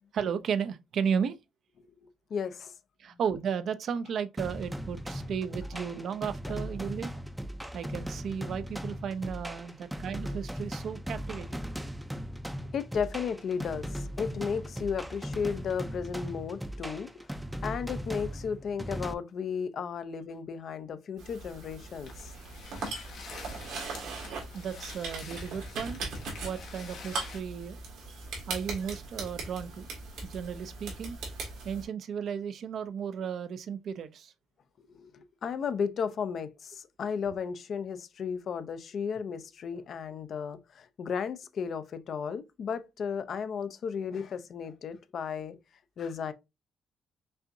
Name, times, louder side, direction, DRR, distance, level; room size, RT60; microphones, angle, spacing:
voice 1, 0.1-1.4 3.0-7.1 7.7-11.6 24.5-26.0 26.4-27.8 28.5-29.9 30.2-31.2 31.6-34.3, right 7 dB, 65° right, 0.5 m, -34 dB
voice 2, 2.0-2.7 3.1-3.2 5.7-5.8 6.5-6.6 12.7-17.1 17.6-22.3 34.9-45.6 46.0-46.3, left 6 dB, 60° left, 0.5 m, -34 dB
sound 1, 4.4-19.1, equal, 5° right, 0.5 m, -38 dB
sound 2, 21.2-31.8, right 3 dB, 90° right, 1.8 m, -40 dB
sound 3, 22.0-27.4, left 5 dB, 75° left, 1.0 m, -48 dB
5.4 x 2.6 x 2.6 m
cardioid pair, 90°, 0 cm